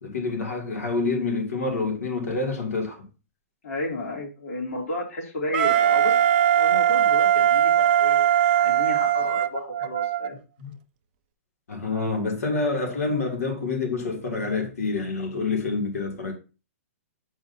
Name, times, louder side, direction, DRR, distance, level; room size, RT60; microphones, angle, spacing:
voice 1, 0.0-3.0 10.6-10.7 11.7-16.3, left 3 dB, 85° left, 3.0 m, -27 dB
voice 2, 3.6-6.2 6.6-10.4, left 2 dB, 65° left, 3.0 m, -32 dB
Wind instrument woodwind instrument, 5.5-10.3, right 10 dB, 35° right, 0.4 m, -20 dB
7.6 x 4.7 x 2.8 m
hypercardioid pair, 165°, 8 cm